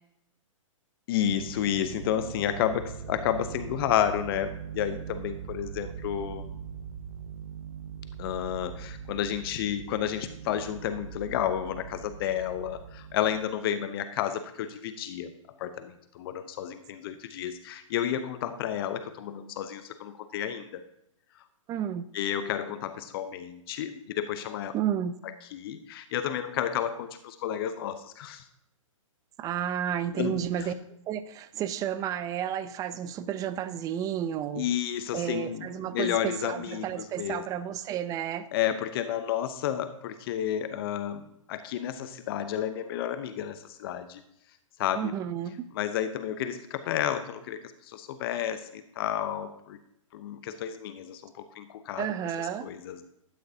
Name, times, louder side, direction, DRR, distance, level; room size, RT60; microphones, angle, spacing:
voice 1, 1.1-6.5 8.2-15.3 15.6-20.8 22.1-24.7 25.2-28.4 30.2-30.7 34.5-37.5 38.5-41.2 41.5-44.2 44.8-45.1 45.7-49.8 50.1-52.1 52.6-53.0, left 10 dB, 45° left, 10 dB, 0.8 m, -31 dB
sound 1, 1.3-13.4, right 7 dB, 80° right, 0.7 m, -41 dB
voice 2, 21.7-22.1 24.7-25.1 29.4-30.8 31.1-34.7 35.1-38.5 44.9-45.6 52.0-52.7, right 9 dB, 20° right, 14 dB, 0.5 m, -31 dB
12.0 x 9.4 x 2.8 m, 0.77 s
hypercardioid pair, 130°, 17 cm